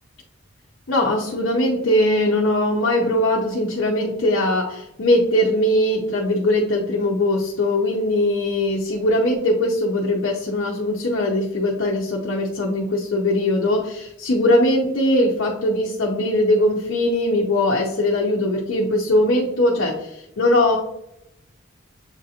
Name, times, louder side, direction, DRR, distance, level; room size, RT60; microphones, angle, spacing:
voice 1, 0.9-20.8, left 1 dB, 70° left, -3 dB, 0.7 m, -20 dB
7.3 x 2.5 x 2.8 m, 0.81 s
head